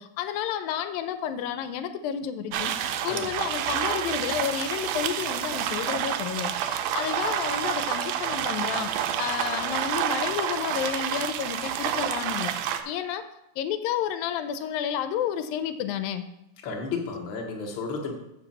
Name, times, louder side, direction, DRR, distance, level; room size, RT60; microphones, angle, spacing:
voice 1, 0.0-13.2 13.6-16.2, left 9 dB, 85° left, 10 dB, 2.3 m, -31 dB
sound 1, 2.5-12.8, right 9 dB, 85° right, 1.7 m, -29 dB
voice 2, 16.6-18.1, left 4 dB, 55° left, 1 dB, 1.4 m, -32 dB
7.2 x 6.0 x 7.2 m, 0.87 s
omnidirectional pair, 4.2 m